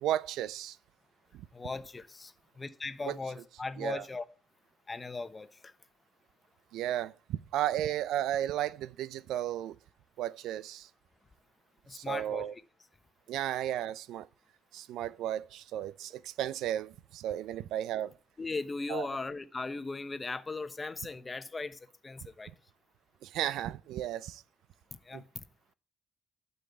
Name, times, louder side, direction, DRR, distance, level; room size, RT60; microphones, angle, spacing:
voice 1, 0.0-0.8 1.3-1.5 3.0-3.2 3.8-4.0 6.7-9.8 10.2-10.9 11.9-12.5 13.3-14.3 14.7-18.1 18.9-19.1 23.2-24.4 25.1-25.2, right 12 dB, 85° right, 0.5 m, -34 dB
voice 2, 1.5-4.2 4.9-5.7 11.9-12.6 18.4-22.5 25.0-25.4, left 3 dB, 30° left, 1.1 m, -38 dB
12.0 x 5.6 x 8.2 m
cardioid pair, 75°, 0 cm